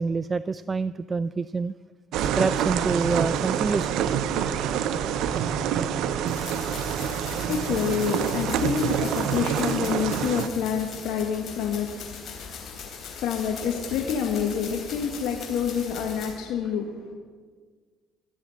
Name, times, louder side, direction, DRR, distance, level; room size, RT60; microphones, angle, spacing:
voice 1, 0.0-1.7 2.2-4.1, right 4 dB, 30° right, 15 dB, 0.3 m, -27 dB
sound 1, 2.1-10.5, right 8 dB, 75° right, 0.7 m, -27 dB
sound 2, 6.3-16.3, left 6 dB, 55° left, 3.5 m, -40 dB
voice 2, 7.2-17.1, left 7 dB, 75° left, 2 dB, 1.5 m, -28 dB
14.0 x 7.5 x 8.5 m, 1.5 s
supercardioid pair, 85°, 0 cm